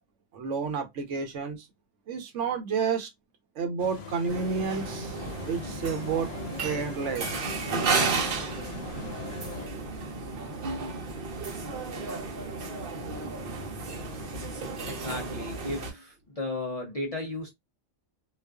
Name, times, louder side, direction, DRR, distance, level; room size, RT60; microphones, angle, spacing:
voice 1, 0.3-1.6 2.1-3.1 3.6-5.1 5.5-6.3 6.6-7.7 12.1-12.2, right 5 dB, 75° right, 1.0 m, -30 dB
sound 1, 3.8-9.7, left 5 dB, 80° left, 1.1 m, -41 dB
sound 2, 4.3-15.9, right 4 dB, 55° right, 0.8 m, -33 dB
voice 2, 14.9-17.5, left 2 dB, 55° left, 0.4 m, -35 dB
2.4 x 2.4 x 2.2 m
omnidirectional pair, 1.3 m